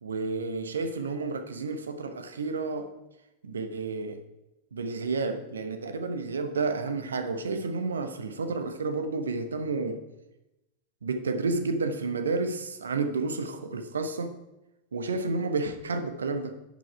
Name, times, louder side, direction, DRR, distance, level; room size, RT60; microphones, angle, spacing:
voice 1, 0.0-2.9 3.4-4.2 4.7-10.0 11.0-14.4 14.9-16.6, right 3 dB, 70° right, 0.9 m, -31 dB
11.0 x 5.2 x 4.7 m
figure-of-eight pair, 90°, 0 cm